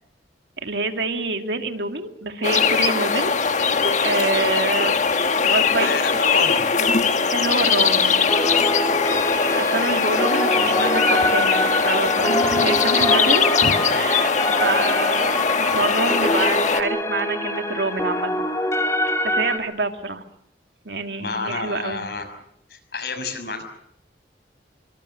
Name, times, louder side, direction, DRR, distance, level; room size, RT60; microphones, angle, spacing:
voice 1, 0.6-3.3 4.0-5.0 5.4-6.2 7.3-8.3 9.6-14.3 14.6-18.5 19.1-20.2 20.8-22.0, right 3 dB, 75° right, 6 dB, 2.3 m, -27 dB
sound 1, 2.4-16.8, left 5 dB, 45° left, 1.3 m, -20 dB
voice 2, 5.8-6.7 10.5-10.9 21.2-22.3 22.7-23.6, left 3 dB, 60° left, 8 dB, 5.9 m, -29 dB
sound 2, 8.3-19.6, left 1 dB, 15° left, 3.1 m, -25 dB
26.5 x 24.5 x 6.6 m, 0.75 s
head